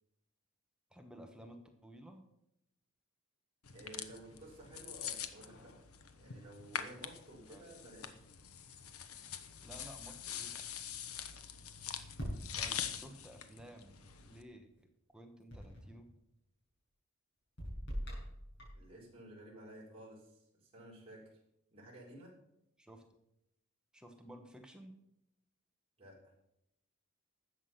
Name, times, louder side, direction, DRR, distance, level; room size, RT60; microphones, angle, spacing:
voice 1, 0.9-2.3 7.5-7.7 9.6-10.6 12.6-14.9 15.1-16.1 22.8-23.0 23.9-25.0, equal, 5° right, 4 dB, 1.1 m, -54 dB
sound 1, 3.7-14.4, left 8 dB, 85° left, 1.0 m, -45 dB
voice 2, 3.7-5.8 6.2-8.2 18.7-21.4 21.7-22.3 26.0-26.3, right 1 dB, 25° right, -5 dB, 4.3 m, -53 dB
sound 2, 12.2-13.2 15.5-16.0 17.6-18.9, equal, 55° left, 6.1 m, -43 dB
13.0 x 8.2 x 5.8 m, 0.81 s
head